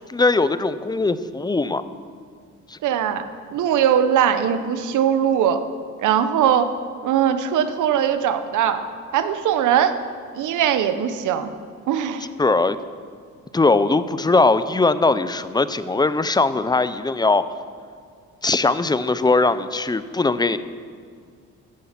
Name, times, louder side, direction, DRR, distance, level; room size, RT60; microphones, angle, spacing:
voice 1, 0.1-1.8 2.7-2.8 12.4-12.8 13.5-17.4 18.4-20.6, left 3 dB, 15° left, 14 dB, 0.5 m, -20 dB
voice 2, 2.8-5.6 6.0-6.7 7.0-8.9 9.1-10.0 10.3-11.5 11.9-12.3, right 9 dB, 80° right, 10 dB, 0.9 m, -20 dB
14.0 x 7.5 x 5.8 m, 2.1 s
cardioid pair, 90°, 30 cm